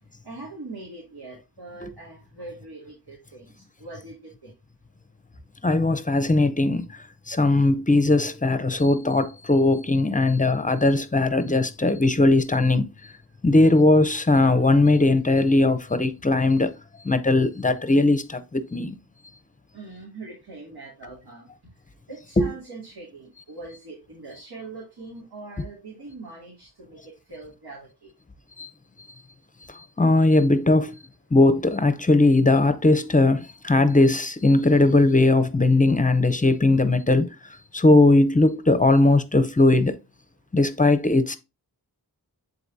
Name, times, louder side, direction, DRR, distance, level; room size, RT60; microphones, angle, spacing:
voice 1, 0.2-3.5 3.8-4.5 19.7-21.5 22.1-28.1 32.8-32.9, right 3 dB, 80° right, 2.6 m, -42 dB
voice 2, 5.6-6.9 7.3-12.9 13.4-16.7 17.0-18.9 22.4-22.5 28.6-28.7 30.0-30.9 31.3-37.3 37.7-39.9 40.5-41.4, left 2 dB, 20° left, 0.6 m, -19 dB
10.0 x 4.1 x 2.7 m
wide cardioid pair, 90°, 38 cm